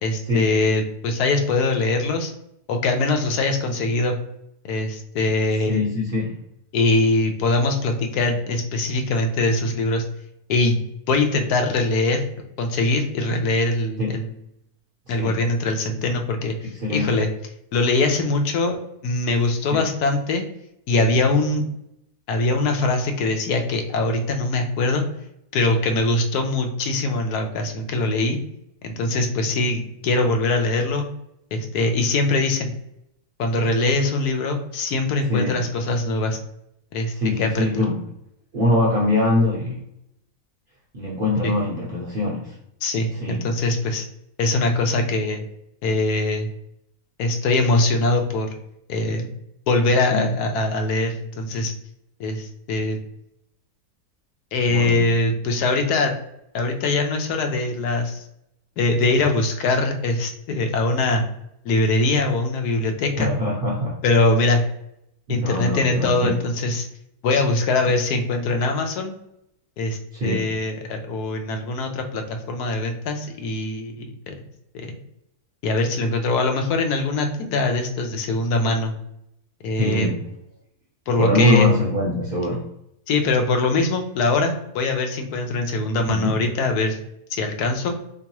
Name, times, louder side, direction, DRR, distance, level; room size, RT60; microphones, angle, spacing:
voice 1, 0.0-2.3 2.7-4.2 4.6-5.8 6.7-10.0 10.5-10.8 11.1-12.2 12.6-14.4 15.1-17.3 17.7-20.4 20.9-21.7 22.3-25.0 25.5-28.4 28.8-31.0 31.5-32.7 33.4-36.4 36.9-37.8 41.4-41.5 42.8-44.1 44.4-45.4 45.8-46.5 47.2-48.5 48.9-49.3 49.7-51.7 52.2-53.0 54.5-56.2 56.5-58.2 58.8-61.2 61.6-63.3 64.0-64.6 65.3-66.9 67.2-69.1 69.8-74.3 74.7-75.0 75.6-78.9 79.6-80.1 81.1-81.7 83.1-87.0 87.3-87.9, left 2 dB, 75° left, 4 dB, 1.2 m, -22 dB
voice 2, 5.7-6.4 14.0-14.1 15.2-15.4 16.8-17.1 19.7-19.9 35.3-35.6 37.1-38.0 38.5-39.8 40.9-42.5 43.1-43.5 50.1-50.2 54.6-55.0 63.2-64.0 65.3-66.4 70.1-70.5 79.8-80.2 81.2-82.7 86.1-86.3, left 1 dB, 50° right, -3 dB, 0.6 m, -23 dB
3.5 x 3.0 x 2.9 m, 0.79 s
omnidirectional pair, 1.7 m